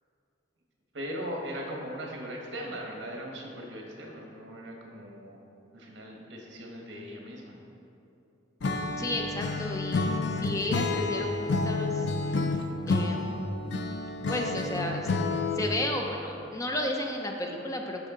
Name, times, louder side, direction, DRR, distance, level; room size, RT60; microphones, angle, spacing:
voice 1, 0.9-5.4 5.7-7.6, equal, 65° right, -1 dB, 1.4 m, -39 dB
Acoustic guitar / Strum, 8.6-15.8, left 3 dB, 65° left, 0.5 m, -29 dB
voice 2, 9.0-12.6 12.9-13.5 14.3-15.1 15.5-18.1, left 1 dB, 20° left, 2 dB, 0.5 m, -33 dB
11.5 x 4.8 x 3.8 m, 2.7 s
head